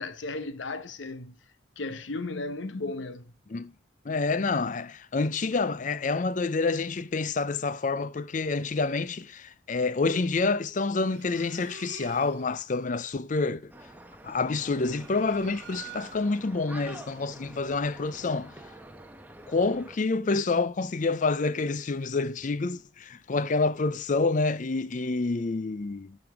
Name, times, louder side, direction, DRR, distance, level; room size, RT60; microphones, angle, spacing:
voice 1, 0.0-1.4 1.8-3.3, left 3 dB, 75° left, 0.9 m, -35 dB
voice 2, 4.1-13.7 14.2-18.5 19.5-26.2, left 3 dB, 40° left, 0.5 m, -28 dB
sound 1, 11.0-12.6 14.4-16.5, right 7 dB, 60° right, 0.7 m, -47 dB
sound 2, 13.7-20.0, right 1 dB, 10° right, 0.9 m, -48 dB
14.0 x 5.3 x 4.9 m
head